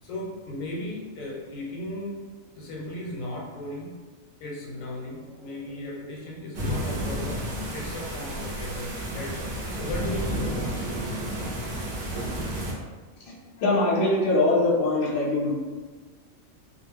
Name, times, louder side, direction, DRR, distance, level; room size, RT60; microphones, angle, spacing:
voice 1, 0.0-2.2 2.5-3.9 4.4-10.9, left 1 dB, 80° left, -3 dB, 1.0 m, -36 dB
sound 1, 6.5-12.7, right 1 dB, 60° right, 0.5 m, -31 dB
voice 2, 13.6-15.5, left 2 dB, 55° left, -4 dB, 0.8 m, -22 dB
2.3 x 2.0 x 3.3 m, 1.3 s
omnidirectional pair, 1.4 m